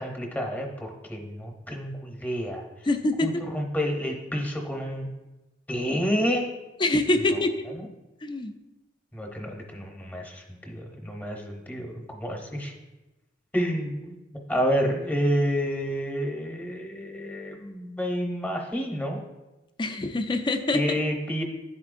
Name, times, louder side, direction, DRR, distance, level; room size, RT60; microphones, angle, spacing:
voice 1, 0.0-2.6 3.2-5.1 5.7-6.5 7.3-7.9 9.1-12.7 13.5-14.1 14.5-19.2 20.7-21.4, equal, 10° left, 1 dB, 0.8 m, -29 dB
voice 2, 2.9-3.3 6.8-7.5 8.2-8.5 19.8-20.8, left 2 dB, 25° left, 8 dB, 0.4 m, -24 dB
10.5 x 4.3 x 2.5 m, 1.1 s
head